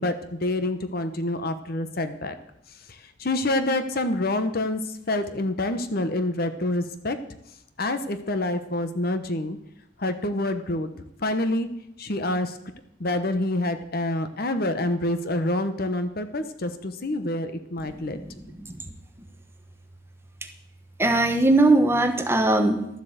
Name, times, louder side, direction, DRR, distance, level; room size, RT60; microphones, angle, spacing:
voice 1, 0.0-2.3 3.2-4.8 5.1-7.2 7.8-9.6 10.0-10.9 11.2-11.7 12.0-12.5 13.0-18.2, left 1 dB, 50° left, 9 dB, 1.0 m, -27 dB
voice 2, 17.8-18.8 21.0-22.9, right 2 dB, 15° right, 6 dB, 1.0 m, -21 dB
12.5 x 7.8 x 7.9 m, 0.79 s
head